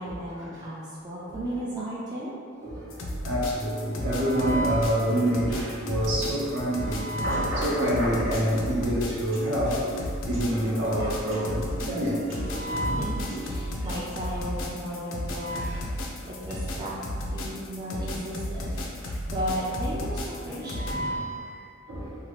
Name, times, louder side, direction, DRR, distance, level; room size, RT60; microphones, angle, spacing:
voice 1, 0.0-2.3 12.8-16.9 17.3-18.7 19.3-21.0, equal, 20° right, -8 dB, 0.4 m, -35 dB
sound 1, 2.9-20.9, left 1 dB, 80° left, 0.4 m, -33 dB
voice 2, 3.2-9.8 10.3-12.2 12.6-13.1 15.4-15.6 19.7-19.9 20.8-21.4 21.9-22.0, equal, 60° right, -6 dB, 0.7 m, -27 dB
Piano, 5.8-13.8, right 2 dB, 85° right, 0.9 m, -40 dB
2.9 x 2.4 x 3.0 m, 2.2 s
head